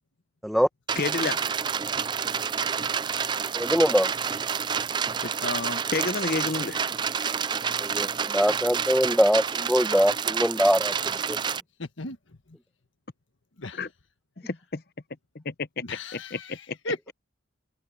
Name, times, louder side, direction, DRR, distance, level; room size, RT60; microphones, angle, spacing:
sound 1, 0.9-11.6, right 7 dB, 25° right, 0.3 m, -29 dB
voice 1, 1.0-1.4 5.9-6.8 13.7-13.9 14.4-14.8 15.3-15.7 16.1-16.8, left 4 dB, 50° left, 0.9 m, -30 dB
voice 2, 3.5-4.1 7.8-10.9 11.3-11.4, equal, ahead, 1.1 m, -22 dB
voice 3, 5.2-5.8 11.8-12.2 13.6-13.8 15.8-17.1, left 2 dB, 80° left, 1.6 m, -35 dB
head